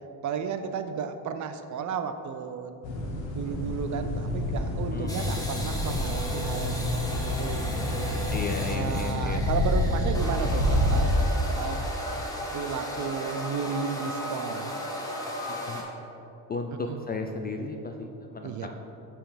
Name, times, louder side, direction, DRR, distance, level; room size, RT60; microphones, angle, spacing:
voice 1, 0.2-2.8 3.3-8.2 8.7-11.8 12.5-14.7 16.9-17.0 18.4-18.7, right 6 dB, 40° right, 9 dB, 0.5 m, -33 dB
sound 1, 2.8-11.0, left 1 dB, 80° left, 1.2 m, -28 dB
voice 2, 4.9-5.4 8.3-9.5 15.5-15.8 16.5-18.7, left 3 dB, 25° left, 4 dB, 0.3 m, -34 dB
sound 2, 5.1-15.8, equal, 5° left, 1.4 m, -35 dB
5.8 x 4.7 x 5.0 m, 2.8 s
hypercardioid pair, 65°, 47 cm